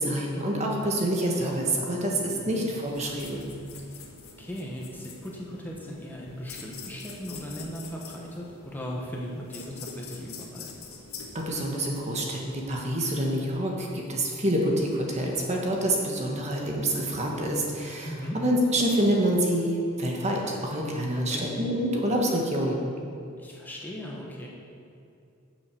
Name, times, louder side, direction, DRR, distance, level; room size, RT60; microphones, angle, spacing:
voice 1, 0.0-3.4 11.3-22.8, right 1 dB, 30° right, -1 dB, 1.4 m, -27 dB
voice 2, 2.2-2.7 3.9-4.0 4.4-10.7 18.0-18.4 21.3-21.4 23.4-24.5, equal, 10° left, -3 dB, 1.2 m, -38 dB
sound 1, 2.8-12.2, left 5 dB, 80° left, 1.5 m, -45 dB
9.3 x 7.6 x 6.9 m, 2.5 s
head